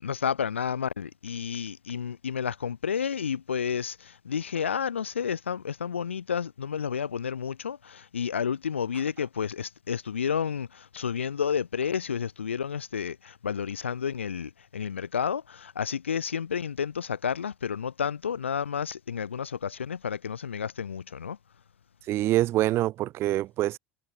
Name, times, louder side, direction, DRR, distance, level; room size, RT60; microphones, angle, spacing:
voice 1, 0.0-21.4, left 7 dB, 80° left, 0.4 m, -31 dB
voice 2, 22.1-23.8, right 15 dB, 40° right, 0.3 m, -25 dB
figure-of-eight pair, 70°, 6 cm